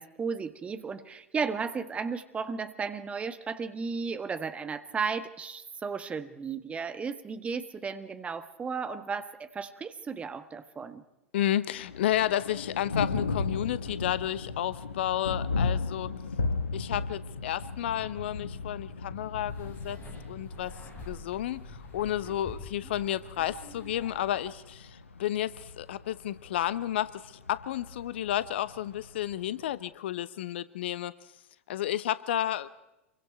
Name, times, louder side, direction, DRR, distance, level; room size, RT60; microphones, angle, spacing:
voice 1, 0.0-11.0, right 5 dB, 20° right, 11 dB, 1.4 m, -34 dB
voice 2, 11.3-16.1 16.7-20.0 20.3-20.7 21.1-31.1 31.7-32.7, left 12 dB, 55° left, 17 dB, 0.9 m, -31 dB
Thunder, 11.7-29.7, left 4 dB, 75° left, 1.2 m, -36 dB
sound 1, 19.5-24.5, left 2 dB, 30° left, 7.5 m, -47 dB
27.5 x 23.0 x 4.6 m, 0.94 s
figure-of-eight pair, 90°, 7 cm